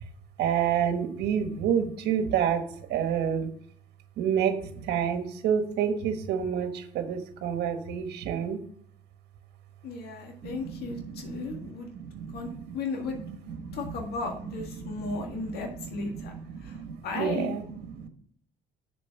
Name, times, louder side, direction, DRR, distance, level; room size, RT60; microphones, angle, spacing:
voice 1, 0.4-2.6 2.9-3.5 4.2-8.6 10.4-12.8 13.1-13.9 14.2-18.1, right 8 dB, 75° right, 7 dB, 1.4 m, -30 dB
voice 2, 9.8-11.9 12.3-13.2 13.7-16.3 16.6-16.8 17.0-17.5, left 4 dB, 70° left, 2 dB, 1.8 m, -35 dB
6.9 x 5.1 x 7.0 m, 0.63 s
cardioid pair, 110°, 17 cm